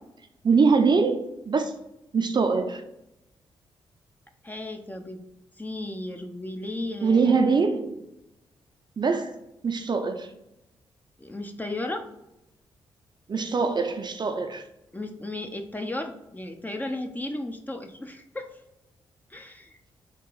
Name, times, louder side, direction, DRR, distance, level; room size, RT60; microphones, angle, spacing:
voice 1, 0.4-1.7 2.1-2.8 7.0-8.0 9.0-9.3 9.6-10.3 13.3-14.6, right 4 dB, 40° right, 6 dB, 0.6 m, -23 dB
voice 2, 4.4-5.2 5.6-7.4 11.2-12.1 14.9-18.5 19.3-19.8, left 1 dB, 15° left, 5 dB, 0.7 m, -34 dB
3.7 x 2.9 x 4.6 m, 0.89 s
hypercardioid pair, 40°, 11 cm